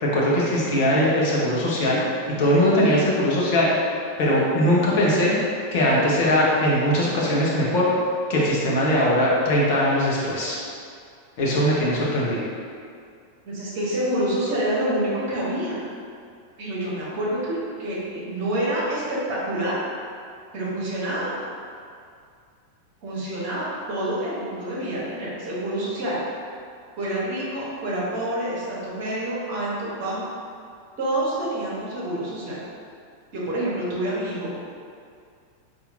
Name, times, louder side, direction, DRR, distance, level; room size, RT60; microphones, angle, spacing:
voice 1, 0.0-2.0 2.4-3.8 4.2-5.3 5.7-7.9 8.3-10.6 11.4-12.4, equal, 50° left, -5 dB, 0.8 m, -20 dB
voice 2, 13.4-15.8 16.6-19.8 20.5-21.3 23.0-26.2 27.0-30.3 31.0-32.6 33.3-34.5, right 1 dB, 50° right, -6 dB, 1.1 m, -27 dB
4.2 x 2.7 x 2.6 m, 2.3 s
figure-of-eight pair, 90°, 0 cm